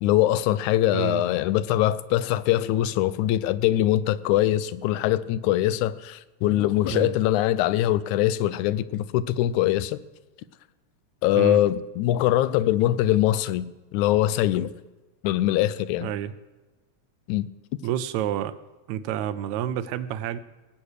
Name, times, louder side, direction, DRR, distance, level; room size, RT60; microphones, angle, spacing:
voice 1, 0.0-10.0 11.2-14.8 15.2-16.1 17.3-17.5, left 14 dB, 85° left, 2.0 m, -23 dB
voice 2, 16.0-16.4 17.8-18.6 18.9-20.4, right 10 dB, 80° right, 1.9 m, -29 dB
18.5 x 8.4 x 6.5 m
omnidirectional pair, 3.4 m